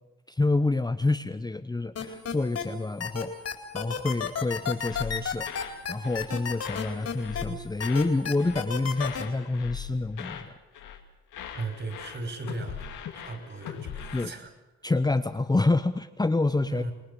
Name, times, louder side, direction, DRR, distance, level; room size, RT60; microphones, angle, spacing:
voice 1, 0.3-3.3 3.7-5.5 5.9-10.5 14.1-14.3 14.8-16.8, left 2 dB, 15° left, 9 dB, 0.9 m, -27 dB
sound 1, 1.9-2.6 3.0-7.4 7.8-9.2, left 7 dB, 55° left, 4.5 m, -31 dB
sound 2, 4.8-5.8 6.0-6.3 6.6-8.1 8.4-8.7 9.0-10.5 10.7-11.0 11.3-14.3, left 8 dB, 80° left, 2.7 m, -40 dB
voice 2, 11.5-12.8 13.1-14.5 16.7-16.9, right 3 dB, 40° right, 7 dB, 5.3 m, -36 dB
27.5 x 19.5 x 7.0 m, 0.99 s
cardioid pair, 90°, 30 cm